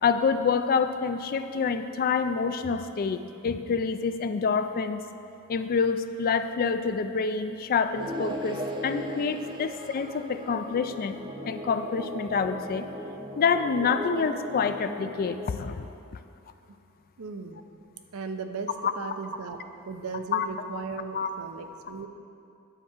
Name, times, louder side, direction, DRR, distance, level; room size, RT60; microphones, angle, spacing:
voice 1, 0.0-5.0 5.5-11.2 11.5-12.9 13.4-15.9 18.8-18.9 20.3-20.5 21.1-21.3, left 5 dB, 45° left, 10 dB, 0.3 m, -27 dB
sound 1, 8.0-15.5, equal, 20° right, 0.6 m, -37 dB
voice 2, 17.2-17.7 18.1-19.6 19.9-22.1, right 4 dB, 80° right, 7 dB, 0.6 m, -37 dB
10.0 x 4.6 x 7.1 m, 2.6 s
head